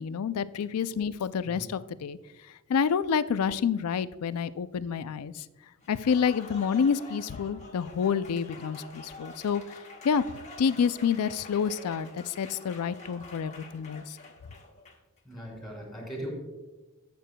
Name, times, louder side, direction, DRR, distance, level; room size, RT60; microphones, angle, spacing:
voice 1, 0.0-2.2 2.7-5.4 5.9-9.6 10.0-10.2 10.6-14.2, left 6 dB, 80° left, 16 dB, 0.4 m, -28 dB
Applause, 5.8-15.2, left 2 dB, 35° left, 1.2 m, -47 dB
voice 2, 15.2-16.3, equal, ahead, -2 dB, 3.2 m, -39 dB
15.0 x 6.8 x 2.2 m, 1.2 s
head